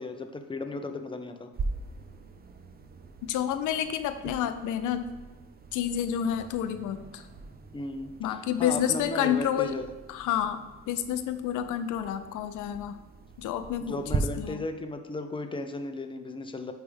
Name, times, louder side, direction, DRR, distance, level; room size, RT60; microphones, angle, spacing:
voice 1, 0.0-1.5 7.7-8.1 8.6-9.9 13.8-16.7, left 2 dB, 15° left, 7 dB, 0.6 m, -35 dB
sound 1, 1.5-14.2, right 4 dB, 30° right, 0.6 m, -41 dB
voice 2, 3.2-5.1 5.7-7.3 8.2-9.8 10.1-10.6 10.9-13.0 13.4-14.6, left 10 dB, 85° left, 9 dB, 0.6 m, -29 dB
9.7 x 3.4 x 3.4 m, 1.2 s
cardioid pair, 90°, 30 cm